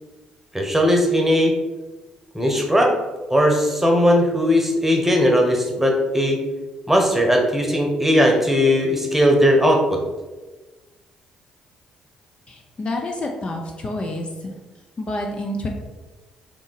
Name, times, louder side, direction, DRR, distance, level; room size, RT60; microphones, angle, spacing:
voice 1, 0.5-1.5 2.3-2.9 3.3-6.4 6.9-10.0, equal, 10° right, 1 dB, 1.1 m, -18 dB
voice 2, 12.5-14.3 15.0-15.7, left 1 dB, 40° left, 2 dB, 0.6 m, -28 dB
3.7 x 2.9 x 4.0 m, 1.2 s
hypercardioid pair, 45°, 3 cm